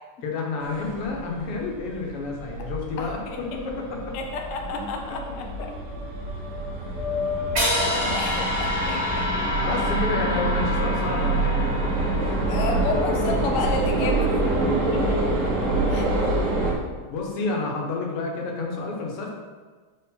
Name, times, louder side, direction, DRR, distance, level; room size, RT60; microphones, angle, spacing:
voice 1, 0.2-4.1 7.9-8.2 9.6-11.7 14.8-14.9 17.1-19.3, left 3 dB, 90° left, 0 dB, 1.9 m, -30 dB
sound 1, 0.6-16.7, right 2 dB, 50° right, 1.0 m, -26 dB
voice 2, 3.0-3.4 4.1-5.7 8.1-9.3 12.5-14.3 15.9-16.1 16.4-16.5, left 3 dB, 70° left, 2 dB, 0.7 m, -31 dB
sound 2, 7.6-13.7, left 1 dB, 30° right, 1.9 m, -28 dB
4.5 x 4.3 x 5.5 m, 1.4 s
omnidirectional pair, 2.4 m